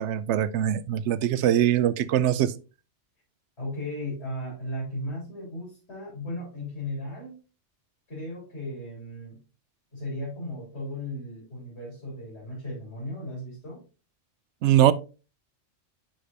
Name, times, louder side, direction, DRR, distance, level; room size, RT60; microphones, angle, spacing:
voice 1, 0.0-2.5 14.6-14.9, right 11 dB, 75° right, 0.9 m, -22 dB
voice 2, 3.6-7.4 8.1-9.4 9.9-13.8, left 1 dB, 60° left, 3.9 m, -36 dB
10.0 x 5.0 x 2.6 m
omnidirectional pair, 1.2 m